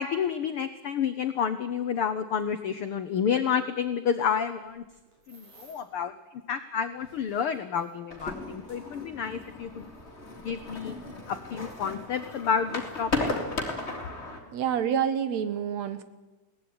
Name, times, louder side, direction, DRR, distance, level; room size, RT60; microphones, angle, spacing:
voice 1, 0.0-4.8 5.3-9.9 10.4-10.9 11.3-13.3, left 7 dB, 75° left, 10 dB, 1.3 m, -30 dB
sound 1, 4.6-6.0 6.7-10.0 10.9-11.0 11.6-13.0 13.8-14.0 14.3-14.6, right 2 dB, 85° right, 8.5 m, -59 dB
sound 2, 8.1-14.4, left 2 dB, 20° left, 3.3 m, -35 dB
voice 2, 9.8-10.5 14.5-16.0, right 8 dB, 65° right, 12 dB, 2.2 m, -29 dB
22.0 x 18.0 x 9.7 m, 1.2 s
omnidirectional pair, 3.8 m